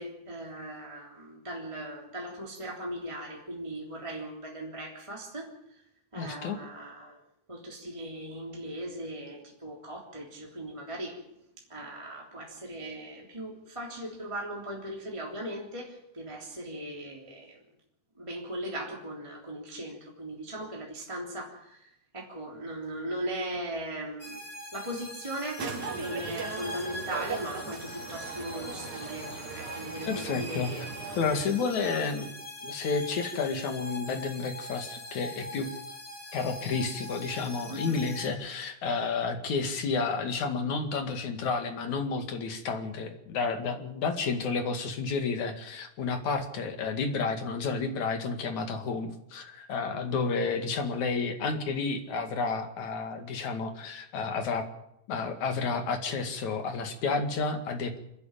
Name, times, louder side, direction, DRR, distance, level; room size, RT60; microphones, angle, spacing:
voice 1, 0.0-5.5 6.1-7.2 7.5-11.2 11.7-17.6 18.2-24.4 24.7-30.9 31.3-31.5 31.8-32.0 37.7-38.0, right 1 dB, 10° right, -2 dB, 3.2 m, -38 dB
voice 2, 6.2-6.6 30.1-30.7 31.2-32.3 32.6-35.7 36.3-54.6 55.1-58.0, left 4 dB, 75° left, 6 dB, 3.5 m, -31 dB
sound 1, 24.2-38.3, left 1 dB, 30° left, 3.0 m, -42 dB
sound 2, 25.6-31.5, right 5 dB, 80° right, 3.7 m, -39 dB
28.0 x 11.0 x 9.0 m, 0.81 s
omnidirectional pair, 3.4 m